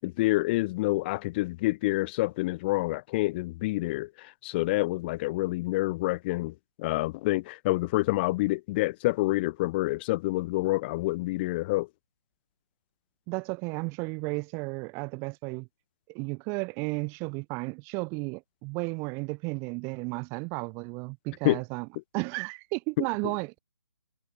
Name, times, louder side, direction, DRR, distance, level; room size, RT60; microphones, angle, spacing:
voice 1, 0.0-11.9 21.4-21.6, left 20 dB, 25° left, 6.8 m, -27 dB
voice 2, 13.3-15.7 16.1-21.9 22.1-23.6, right 31 dB, 20° right, 4.1 m, -33 dB
hypercardioid pair, 155°, 13 cm